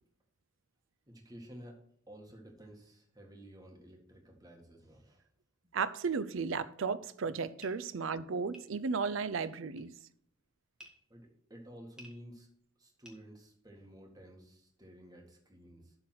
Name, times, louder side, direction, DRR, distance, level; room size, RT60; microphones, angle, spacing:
voice 1, 1.1-1.8 2.1-5.2 7.8-7.9 11.1-12.5 12.8-15.9, equal, 20° right, 1.7 m, -53 dB
voice 2, 5.7-9.9, right 5 dB, 70° right, 0.5 m, -34 dB
sound 1, 7.6-14.0, equal, 5° right, 1.5 m, -59 dB
12.0 x 3.9 x 5.8 m
head